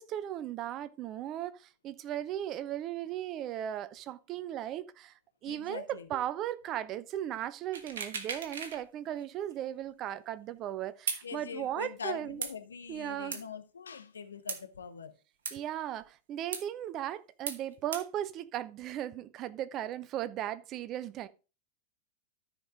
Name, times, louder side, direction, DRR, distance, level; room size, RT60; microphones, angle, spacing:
voice 1, 0.0-5.1 5.4-12.4 12.9-13.4 15.5-21.3, right 11 dB, 35° right, 0.7 m, -37 dB
voice 2, 5.5-6.1 11.2-15.1, left 6 dB, 70° left, 1.0 m, -43 dB
sound 1, 7.7-8.8 9.2-9.3 11.1-11.2 12.4-12.5 13.3-13.4 14.5-14.6 15.5-15.6 16.5-16.6 17.5-17.6 17.9-18.0, right 6 dB, 60° right, 1.3 m, -36 dB
13.0 x 5.2 x 3.7 m
figure-of-eight pair, 90°, 0 cm